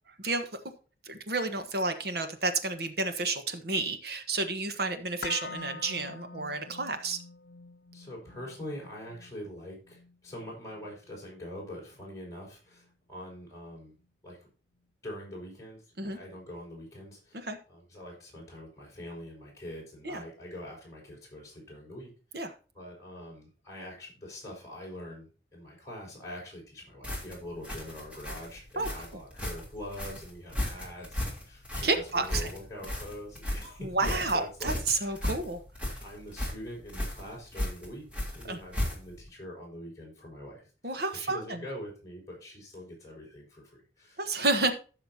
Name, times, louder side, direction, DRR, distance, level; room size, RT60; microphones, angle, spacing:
voice 1, 1.0-7.2 16.0-16.2 17.3-17.6 20.0-20.2 22.3-22.5 28.8-28.9 31.8-32.5 33.8-35.6 38.5-38.6 40.8-41.6 44.2-44.7, right 3 dB, 60° right, 8 dB, 1.3 m, -30 dB
sound 1, 5.2-13.3 13.6-13.7, left 3 dB, 60° left, 0.6 m, -47 dB
voice 2, 7.9-14.0 14.2-14.5 15.0-22.4 22.7-35.2 36.0-44.6, left 1 dB, 15° left, -4 dB, 5.5 m, -44 dB
sound 2, 27.0-39.3, left 1 dB, 5° right, 3.2 m, -35 dB
15.0 x 6.6 x 2.8 m, 0.35 s
head